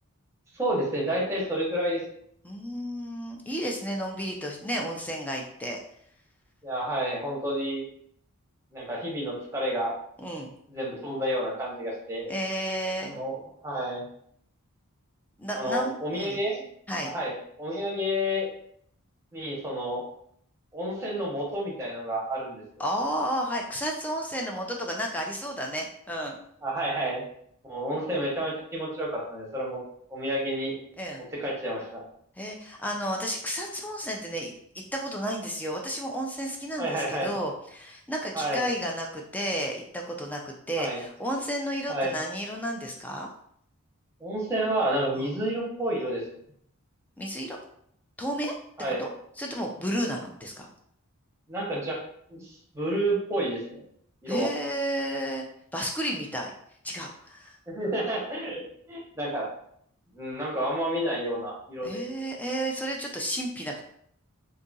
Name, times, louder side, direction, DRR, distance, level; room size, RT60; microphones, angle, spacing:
voice 1, 0.5-2.0 6.6-7.8 8.7-9.9 10.7-12.3 13.0-14.0 15.5-16.6 17.0-18.5 19.3-20.0 20.7-22.8 26.6-27.2 27.6-29.8 30.1-30.7 31.3-32.0 36.8-37.3 38.3-38.6 40.8-41.0 41.9-42.2 44.2-46.2 48.8-49.1 51.5-52.0 52.3-52.5 52.7-53.8 54.2-54.5 57.7-58.6 58.9-59.5 60.1-62.0, right 1 dB, 10° right, -3 dB, 0.8 m, -30 dB
voice 2, 2.4-5.8 10.2-10.5 12.3-13.1 15.4-16.4 16.9-17.1 22.8-26.4 31.0-31.2 32.4-34.5 34.9-43.3 45.2-45.3 47.2-47.6 48.2-48.5 49.0-49.1 49.4-50.7 54.3-55.5 55.7-56.5 56.8-57.6 61.8-63.8, equal, 5° left, 0 dB, 0.4 m, -32 dB
2.7 x 2.4 x 3.9 m, 0.68 s
head